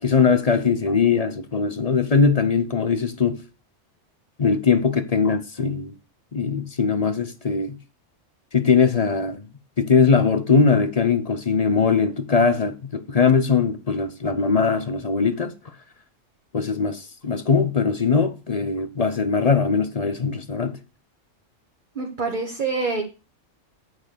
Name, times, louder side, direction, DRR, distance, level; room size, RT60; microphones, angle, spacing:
voice 1, 0.0-3.4 4.4-5.9 6.3-7.8 8.5-9.5 9.8-15.5 16.5-20.8, left 5 dB, 35° left, 0.7 m, -21 dB
voice 2, 21.9-23.0, right 4 dB, 40° right, 1.5 m, -26 dB
8.9 x 6.1 x 6.7 m
omnidirectional pair, 1.3 m